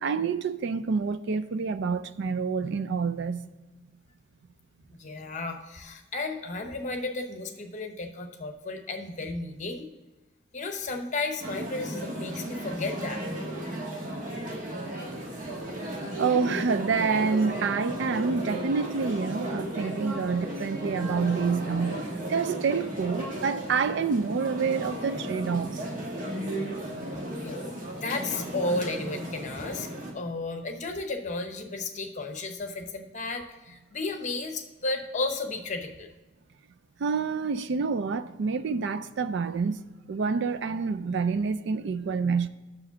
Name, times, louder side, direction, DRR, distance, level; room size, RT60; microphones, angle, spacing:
voice 1, 0.0-3.5 16.0-25.8 37.0-39.8 40.1-42.5, right 5 dB, 60° right, 0.4 m, -27 dB
voice 2, 5.0-9.9 10.5-13.3 27.4-29.9 30.1-36.1, left 3 dB, 35° left, 0.8 m, -33 dB
sound 1, 11.4-30.1, right 1 dB, 40° right, 1.4 m, -35 dB
6.4 x 4.9 x 6.9 m
head